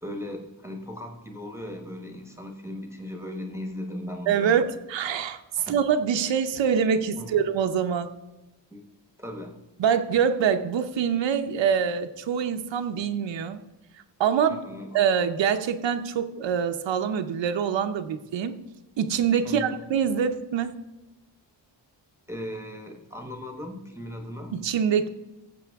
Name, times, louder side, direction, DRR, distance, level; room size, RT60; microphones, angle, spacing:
voice 1, 0.0-4.6 5.6-5.8 7.2-7.4 8.7-8.8 9.2-9.5 14.5-15.0 19.4-19.8 22.3-24.6, left 1 dB, 5° right, 3 dB, 1.0 m, -37 dB
voice 2, 4.3-8.1 9.8-13.6 14.2-14.6 14.9-18.6 19.0-20.8 24.5-25.1, right 7 dB, 80° right, 7 dB, 0.8 m, -25 dB
15.0 x 7.1 x 3.5 m, 0.99 s
wide cardioid pair, 150°, 44 cm